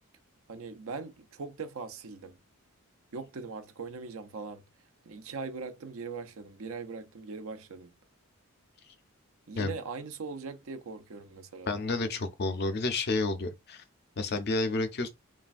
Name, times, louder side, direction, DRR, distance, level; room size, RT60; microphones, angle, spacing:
voice 1, 0.5-2.4 3.1-4.6 5.1-7.9 9.5-11.7, right 4 dB, 70° right, 0.5 m, -40 dB
voice 2, 11.7-13.8 14.2-15.1, left 3 dB, 45° left, 0.5 m, -30 dB
3.1 x 2.2 x 2.4 m
head